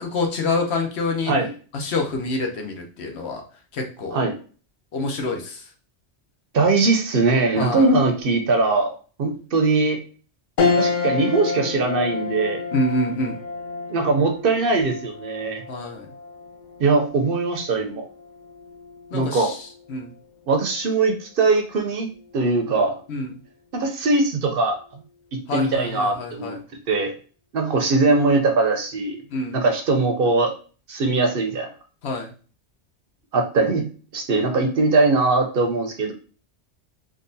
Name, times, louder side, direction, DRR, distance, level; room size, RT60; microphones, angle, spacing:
voice 1, 0.0-1.3 1.7-3.4 3.7-4.2 4.9-5.6 7.6-7.9 12.7-13.4 15.7-16.1 19.1-20.1 23.1-23.4 25.5-26.6 29.3-29.6 32.0-32.3, left 2 dB, 70° left, 2 dB, 1.0 m, -27 dB
voice 2, 6.5-8.9 9.2-10.0 10.7-12.6 13.9-15.6 16.8-18.1 19.1-19.5 20.5-22.1 22.3-23.0 23.7-24.8 25.5-26.6 26.9-27.1 27.5-29.2 29.5-30.5 30.9-31.7 33.3-36.1, right 3 dB, 60° right, 4 dB, 0.8 m, -21 dB
sound 1, 10.6-20.2 20.7-20.8 22.1-22.5, left 4 dB, 55° left, 0.6 m, -29 dB
3.8 x 2.4 x 2.6 m, 0.38 s
omnidirectional pair, 1.1 m